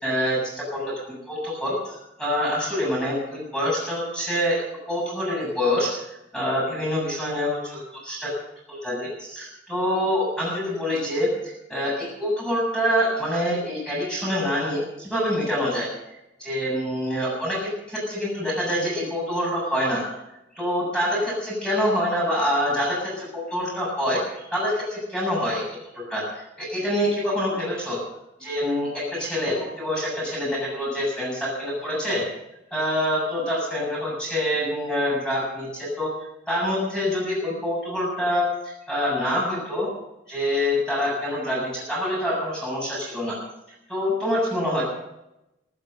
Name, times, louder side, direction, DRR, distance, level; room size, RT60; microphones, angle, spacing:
voice 1, 0.0-6.1 6.3-8.4 8.7-15.9 16.4-20.1 20.5-28.0 28.4-32.3 32.7-36.1 36.5-39.9 40.3-43.4 43.9-44.8, equal, 5° left, -5 dB, 7.3 m, -26 dB
15.0 x 13.5 x 6.6 m, 0.91 s
head